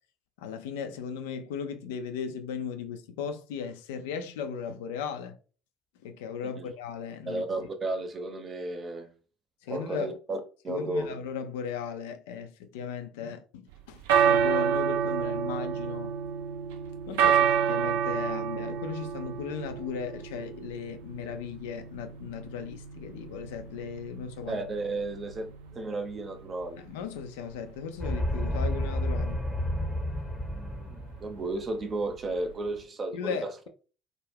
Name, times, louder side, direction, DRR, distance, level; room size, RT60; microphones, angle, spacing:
voice 1, 0.4-5.4 6.0-7.4 9.6-10.2 10.7-16.1 17.1-24.6 26.8-29.4 33.1-33.7, left 7 dB, 75° left, 0.3 m, -37 dB
voice 2, 7.3-9.1 9.7-11.1 24.5-26.8 30.5-33.5, right 2 dB, 40° right, 0.6 m, -34 dB
sound 1, 13.7-32.8, right 8 dB, 75° right, 0.3 m, -30 dB
sound 2, 28.0-31.5, left 1 dB, 10° left, 0.7 m, -30 dB
2.4 x 2.1 x 3.2 m
hypercardioid pair, 55°, 0 cm